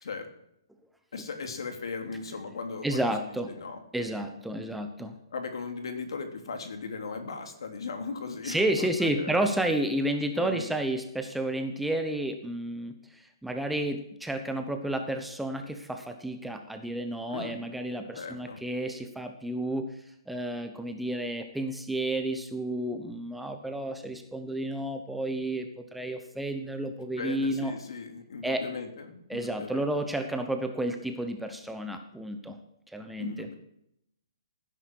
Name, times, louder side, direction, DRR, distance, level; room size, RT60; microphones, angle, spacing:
voice 1, 1.1-4.1 5.3-9.3 10.3-10.7 17.3-17.6 18.1-18.6 27.1-29.8 33.2-33.5, left 4 dB, 70° left, 5 dB, 3.0 m, -38 dB
voice 2, 2.8-3.5 3.9-5.1 8.4-20.0 20.3-27.7 28.4-28.6 29.3-32.6 32.9-33.5, right 1 dB, ahead, 6 dB, 1.0 m, -31 dB
17.0 x 10.0 x 4.7 m, 0.77 s
hypercardioid pair, 150°, 3 cm